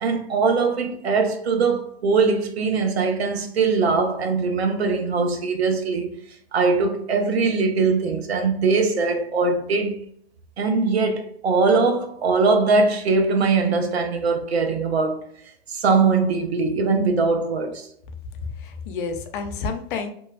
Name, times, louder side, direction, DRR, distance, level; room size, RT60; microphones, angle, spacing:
voice 1, 0.0-6.2 6.5-10.0 10.6-15.3 15.7-17.9, right 4 dB, 80° right, 0.6 m, -21 dB
voice 2, 18.4-20.1, left 5 dB, 55° left, 0.6 m, -30 dB
2.9 x 2.2 x 2.3 m
hypercardioid pair, 120°, 31 cm